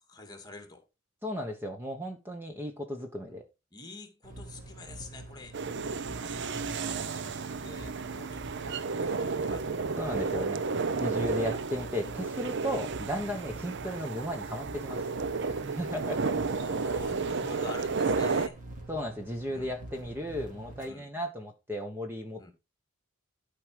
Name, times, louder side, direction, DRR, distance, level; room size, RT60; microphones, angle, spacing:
voice 1, 0.1-0.8 3.7-5.6 6.2-6.4 6.8-9.8 11.3-11.7 13.6-13.8 16.3-18.6 19.5-19.7 20.9-21.1 22.4-22.5, left 2 dB, 20° left, 2.2 m, -47 dB
voice 2, 1.2-3.4 10.0-10.6 11.0-15.1 15.5-16.4 18.9-22.5, equal, 10° right, 1.2 m, -35 dB
sound 1, 4.2-20.9, right 2 dB, 40° right, 3.1 m, -46 dB
sound 2, 5.5-18.5, right 4 dB, 55° right, 0.6 m, -32 dB
13.0 x 5.0 x 4.7 m
head